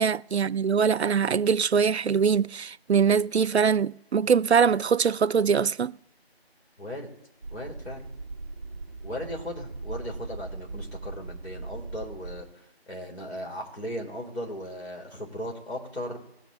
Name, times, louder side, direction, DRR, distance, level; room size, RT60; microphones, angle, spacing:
voice 1, 0.0-6.0, right 6 dB, 90° right, 0.5 m, -23 dB
voice 2, 6.8-7.1 7.5-8.1 9.0-16.2, equal, 85° left, 3.9 m, -37 dB
sound 1, 7.4-12.4, right 3 dB, 20° right, 0.9 m, -39 dB
21.0 x 8.0 x 3.1 m
figure-of-eight pair, 165°, 32 cm